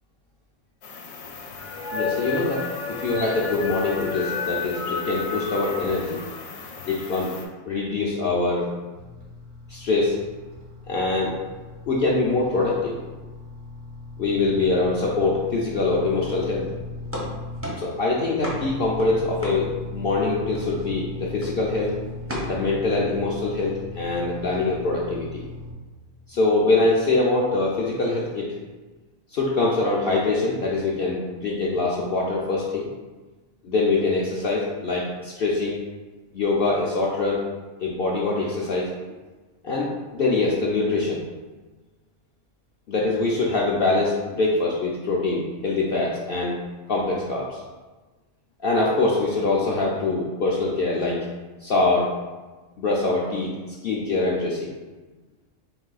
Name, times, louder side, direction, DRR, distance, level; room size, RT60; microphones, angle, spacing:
sound 1, 0.8-7.4, left 5 dB, 85° left, 1.0 m, -32 dB
voice 1, 1.9-6.2 6.8-7.3 7.6-8.7 9.7-10.2 10.9-11.3 11.9-12.9 14.2-16.6 17.8-19.7 19.9-21.9 22.5-25.4 26.3-28.5 29.3-32.9 33.6-35.8 36.3-37.4 37.8-38.9 39.6-41.2 42.9-46.6 46.9-47.6 48.6-51.3 51.6-52.1 52.8-53.5 53.8-54.7, left 3 dB, 60° left, -4 dB, 0.6 m, -23 dB
sound 2, 8.9-18.0 18.4-25.7, left 2 dB, 85° right, 1.2 m, -38 dB
sound 3, 17.0-20.2 20.5-21.0 21.4-21.7 22.3-22.5, equal, 15° right, 0.4 m, -34 dB
3.9 x 2.7 x 3.9 m, 1.3 s
omnidirectional pair, 1.4 m